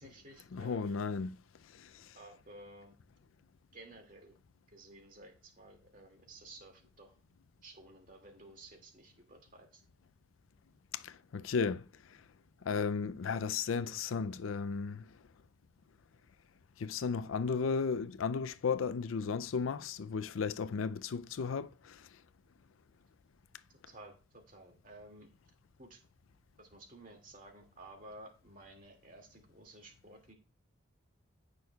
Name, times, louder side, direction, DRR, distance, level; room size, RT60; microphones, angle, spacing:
voice 1, 0.0-1.0 2.1-2.9 3.7-4.4 4.7-7.2 7.6-9.8 23.7-25.3 25.8-26.0 26.6-30.3, right 2 dB, 40° right, 2.2 m, -54 dB
voice 2, 0.5-1.3 1.8-1.9 10.9-11.9 12.6-15.1 16.8-22.0, left 5 dB, 85° left, 0.4 m, -34 dB
16.0 x 6.2 x 2.3 m
head